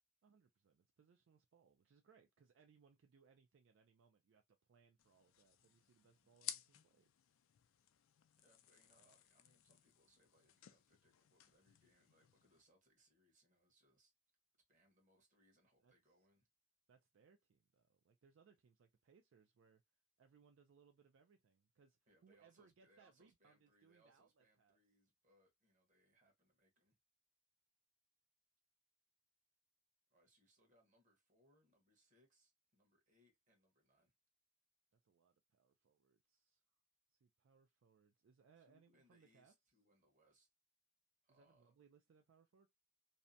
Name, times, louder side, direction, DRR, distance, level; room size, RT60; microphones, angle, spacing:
voice 1, 0.2-7.1 15.8-16.1 16.9-19.8 20.2-24.8 35.0-36.6 37.1-39.5 41.3-42.7, right 6 dB, 65° right, 0.4 m, -71 dB
sound 1, 5.0-12.6, left 12 dB, 70° left, 0.3 m, -56 dB
voice 2, 8.4-14.1 14.7-16.5 22.1-27.0 30.1-34.1 38.6-40.5 41.2-41.7, right 1 dB, 40° right, 1.1 m, -76 dB
2.7 x 2.1 x 2.5 m
head